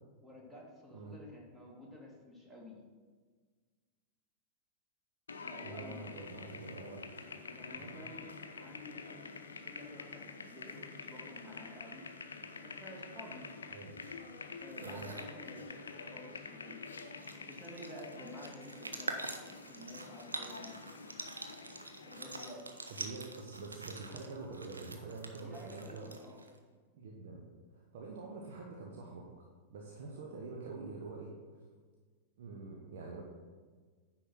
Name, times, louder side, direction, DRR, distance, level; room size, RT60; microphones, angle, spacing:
voice 1, 0.2-2.8 5.4-6.2 7.5-12.1 12.6-13.5 14.6-16.9 17.5-20.8 22.0-22.9 25.4-26.5, left 1 dB, 10° right, -2 dB, 2.2 m, -51 dB
sound 1, 5.3-22.5, left 4 dB, 70° left, 0.6 m, -48 dB
voice 2, 5.6-7.0 7.7-8.0 13.7-14.0 14.8-15.1 22.9-26.1 26.9-27.4 27.7-31.4 32.4-33.2, right 3 dB, 55° right, -1 dB, 1.1 m, -46 dB
sound 2, 14.6-15.3 16.7-16.8 17.0-26.6, right 2 dB, 80° right, 0.7 m, -46 dB
9.9 x 4.2 x 6.0 m, 1.5 s
figure-of-eight pair, 90°, 0 cm